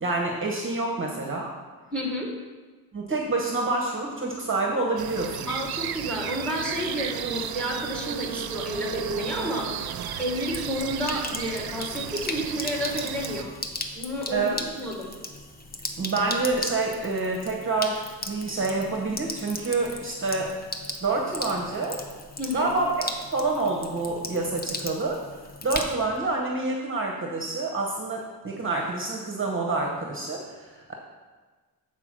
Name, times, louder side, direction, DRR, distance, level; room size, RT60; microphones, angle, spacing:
voice 1, 0.0-1.5 2.9-5.5 14.3-14.6 16.0-20.5 21.0-22.0 22.5-25.2 25.6-30.9, right 3 dB, 35° right, 0 dB, 0.9 m, -27 dB
voice 2, 1.9-2.3 5.5-9.7 10.2-13.5 13.9-15.1 22.4-22.7, equal, 5° left, -1 dB, 1.5 m, -30 dB
sound 1, 5.0-13.4, right 8 dB, 75° right, 0.5 m, -34 dB
Sink (filling or washing), 10.3-26.2, left 2 dB, 25° left, 0.6 m, -37 dB
7.8 x 4.5 x 6.0 m, 1.4 s
wide cardioid pair, 150°, 37 cm